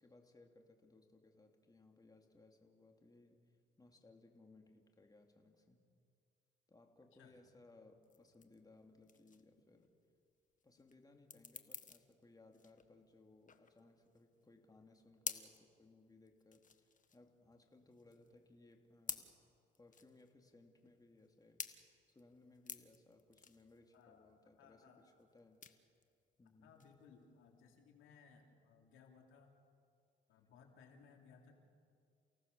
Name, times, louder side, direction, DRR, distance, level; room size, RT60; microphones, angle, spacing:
voice 1, 0.0-5.8 6.7-9.9 10.6-19.3 19.8-21.6 22.1-25.6 26.4-26.8, left 2 dB, 20° left, 3 dB, 2.7 m, -65 dB
sound 1, 8.0-27.8, left 6 dB, 40° left, 1.5 m, -52 dB
voice 2, 23.9-24.3 24.6-25.0 26.6-29.5 30.3-31.5, left 6 dB, 90° left, 2 dB, 3.2 m, -63 dB
29.5 x 17.5 x 6.9 m, 2.3 s
cardioid pair, 90°, 20 cm